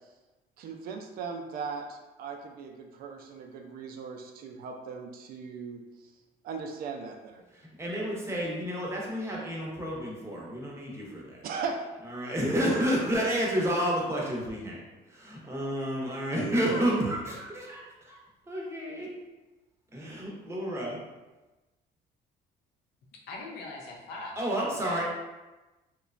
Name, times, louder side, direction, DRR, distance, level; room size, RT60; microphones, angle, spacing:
voice 1, 0.6-6.1 6.4-7.4 11.4-11.8, right 5 dB, 60° right, 3 dB, 0.4 m, -38 dB
voice 2, 7.5-11.4 12.2-14.8 15.1-17.8 18.1-18.2 18.5-19.1 19.9-21.0 24.4-25.0, equal, 15° right, -4 dB, 0.7 m, -30 dB
voice 3, 23.3-25.0, left 2 dB, 75° left, 0 dB, 0.6 m, -42 dB
2.9 x 2.1 x 2.4 m, 1.1 s
cardioid pair, 110°, 17 cm